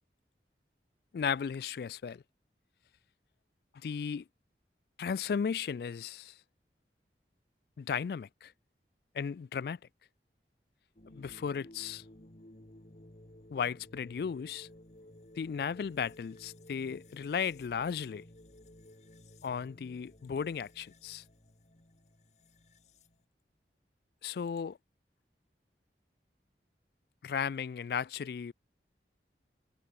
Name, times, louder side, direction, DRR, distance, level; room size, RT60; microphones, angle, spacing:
voice 1, 1.1-2.2 3.8-4.2 5.0-6.3 7.8-8.5 9.1-9.8 11.1-12.0 13.5-14.7 15.4-18.2 19.4-21.2 24.2-24.8 27.2-28.5, left 6 dB, 60° left, 0.3 m, -35 dB
sound 1, 11.0-23.2, left 1 dB, 40° left, 1.8 m, -56 dB
head